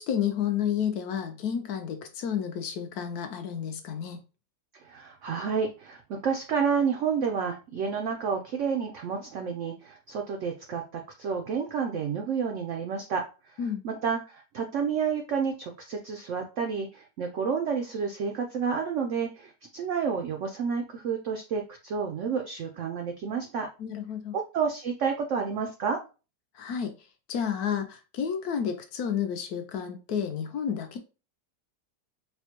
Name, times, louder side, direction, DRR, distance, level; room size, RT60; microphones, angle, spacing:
voice 1, 0.0-4.2 13.6-13.8 23.8-24.3 26.6-26.9 27.3-31.0, left 8 dB, 70° left, 1.0 m, -31 dB
voice 2, 4.9-13.2 13.8-23.7 24.3-26.0, right 6 dB, 90° right, 0.6 m, -30 dB
4.3 x 2.2 x 2.8 m
omnidirectional pair, 1.8 m